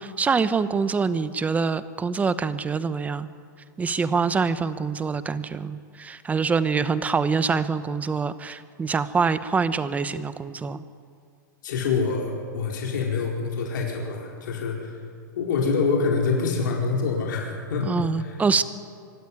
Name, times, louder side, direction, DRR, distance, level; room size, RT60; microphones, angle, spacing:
voice 1, 0.0-3.3 3.8-10.8 17.9-18.6, right 5 dB, 15° right, 13 dB, 1.0 m, -25 dB
voice 2, 11.6-15.0 15.4-18.4, left 4 dB, 75° left, -1 dB, 4.6 m, -26 dB
25.0 x 14.0 x 9.7 m, 2.2 s
hypercardioid pair, 130°, 11 cm